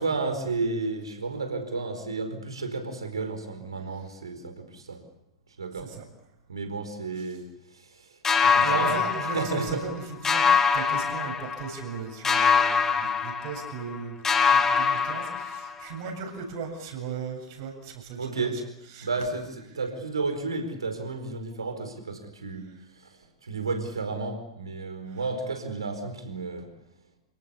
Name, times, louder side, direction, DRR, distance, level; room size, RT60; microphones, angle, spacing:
voice 1, 0.0-5.0 5.6-5.9 6.5-7.4 7.8-8.1 8.4-9.0 9.3-9.8 12.8-12.9 18.2-18.6 19.0-19.5 19.7-22.7 23.0-23.1 23.4-26.7, right 3 dB, 75° right, 7 dB, 4.7 m, -32 dB
voice 2, 5.7-6.1 8.6-18.5 18.9-19.1 25.1-25.2, right 6 dB, 50° right, 4 dB, 7.5 m, -37 dB
sound 1, 8.2-10.0 10.2-11.9 12.2-14.0 14.2-15.9, left 6 dB, 15° left, 2.1 m, -24 dB
28.5 x 18.0 x 8.4 m, 0.82 s
figure-of-eight pair, 100°, 3 cm